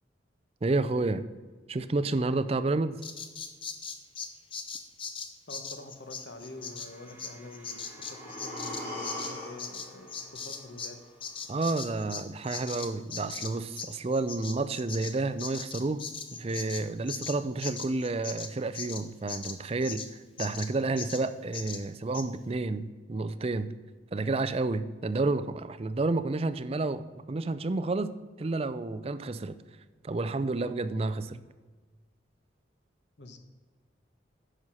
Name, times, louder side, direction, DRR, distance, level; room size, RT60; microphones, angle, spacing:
voice 1, 0.6-1.2 1.7-3.0 11.5-16.0 16.3-20.1 20.4-23.7 24.1-29.6 30.0-31.4, right 3 dB, 35° right, 12 dB, 0.4 m, -30 dB
Bird vocalization bird call bird song, 3.0-10.9 11.2-20.1 20.4-20.7 21.0-21.2 21.5-21.8 22.1-22.3, left 5 dB, 30° left, 0.7 m, -39 dB
voice 2, 5.5-11.0 33.2-33.4, left 2 dB, 70° left, 6 dB, 1.0 m, -46 dB
sound 1, 5.9-14.3, right 1 dB, 10° right, 1.8 m, -59 dB
sound 2, 7.5-11.5 11.8-11.9, left 1 dB, 10° left, 3.2 m, -42 dB
10.0 x 5.6 x 6.2 m, 1.4 s
head